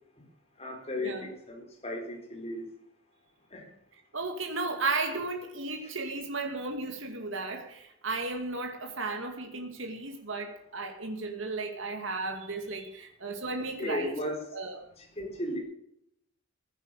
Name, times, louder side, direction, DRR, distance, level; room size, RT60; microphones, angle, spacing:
voice 1, 0.6-2.6 3.5-3.6 5.8-5.9 13.8-14.4 15.0-15.6, left 1 dB, 30° left, 2 dB, 4.2 m, -35 dB
voice 2, 4.1-14.1 14.5-14.8, right 3 dB, 70° right, 3 dB, 2.3 m, -34 dB
16.0 x 10.0 x 6.6 m, 0.75 s
head